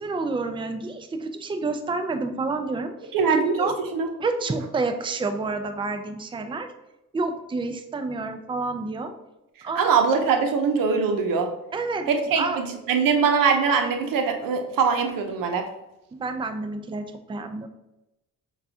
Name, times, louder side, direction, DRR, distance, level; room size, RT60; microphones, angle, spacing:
voice 1, 0.0-2.9 3.6-3.8 4.2-6.7 7.1-9.1 9.6-9.9 11.7-12.1 12.4-12.6 16.1-17.7, right 3 dB, 15° right, 6 dB, 0.4 m, -29 dB
voice 2, 3.1-4.1 9.8-11.5 12.1-15.7, right 5 dB, 85° right, 5 dB, 0.7 m, -22 dB
6.6 x 2.4 x 2.7 m, 0.92 s
cardioid pair, 85°, 33 cm